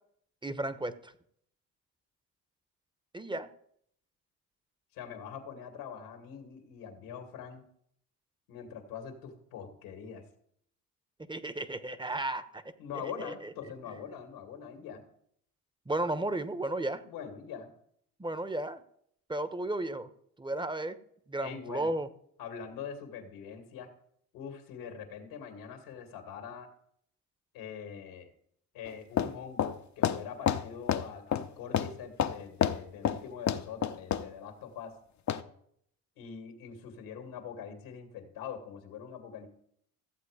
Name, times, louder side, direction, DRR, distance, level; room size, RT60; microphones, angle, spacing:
voice 1, 0.4-1.1 3.1-3.5 11.3-12.6 13.2-13.5 15.9-17.0 18.2-18.8 19.3-20.1 20.4-21.0 21.3-22.1, right 2 dB, 10° right, 13 dB, 1.1 m, -34 dB
voice 2, 4.9-7.6 8.5-10.2 12.8-15.0 17.1-17.7 21.4-21.9 22.4-23.9 24.3-26.7 27.5-28.3 28.7-35.0 36.2-39.5, left 7 dB, 80° left, 4 dB, 2.1 m, -43 dB
sound 1, 28.9-29.0 29.2-29.3 29.6-29.8 30.0-31.0 31.3-31.5 31.7-31.9 32.2-32.8 33.0-33.2 33.5-34.2 35.3-35.4, left 9 dB, 45° left, 0.9 m, -28 dB
14.5 x 7.8 x 5.0 m, 0.68 s
supercardioid pair, 60°, 38 cm